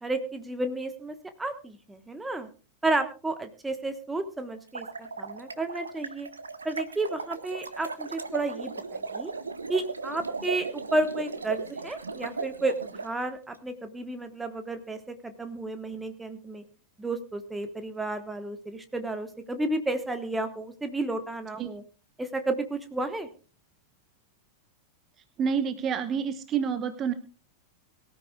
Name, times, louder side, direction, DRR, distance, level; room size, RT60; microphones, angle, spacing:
voice 1, 0.0-2.5 2.8-6.3 6.6-9.3 9.7-16.6 17.0-21.8 22.2-23.3, right 2 dB, 10° right, 8 dB, 1.2 m, -32 dB
sound 1, 4.6-13.1, right 4 dB, 75° right, 1.1 m, -37 dB
voice 2, 25.4-27.1, right 7 dB, 30° right, 10 dB, 1.1 m, -28 dB
23.0 x 13.0 x 2.3 m, 0.35 s
figure-of-eight pair, 90°, 0 cm